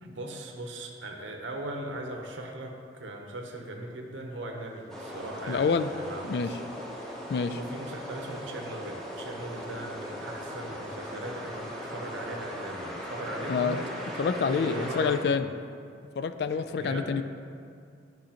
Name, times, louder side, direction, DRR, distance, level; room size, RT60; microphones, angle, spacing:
voice 1, 0.0-6.6 7.5-13.9 14.4-15.4 16.5-17.2, right 1 dB, 90° right, 2 dB, 0.9 m, -39 dB
sound 1, 4.9-15.2, equal, 5° left, 0.8 m, -38 dB
voice 2, 5.5-5.9 6.2-6.5 7.3-7.6 13.5-13.8 14.2-15.5 16.2-17.2, left 5 dB, 60° left, 11 dB, 0.3 m, -27 dB
10.5 x 6.2 x 2.9 m, 2.3 s
head